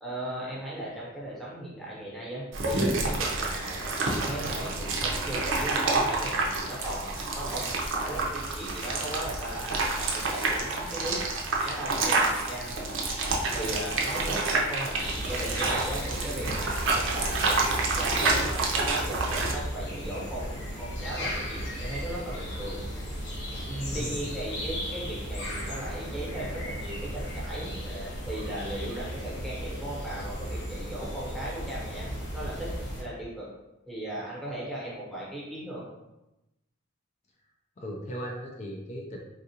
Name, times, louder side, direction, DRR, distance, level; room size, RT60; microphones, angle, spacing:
voice 1, 0.0-11.2 11.6-22.8 23.7-33.5 33.9-35.8, right 1 dB, ahead, -7 dB, 0.9 m, -37 dB
sound 1, 2.5-19.5, right 3 dB, 65° right, 0.5 m, -28 dB
sound 2, 4.9-13.9, equal, 85° left, 1.4 m, -45 dB
sound 3, 15.0-33.0, equal, 60° left, 1.0 m, -35 dB
voice 2, 23.9-24.2 37.8-39.2, equal, 35° left, 0 dB, 0.4 m, -37 dB
3.5 x 2.4 x 2.8 m, 0.94 s
head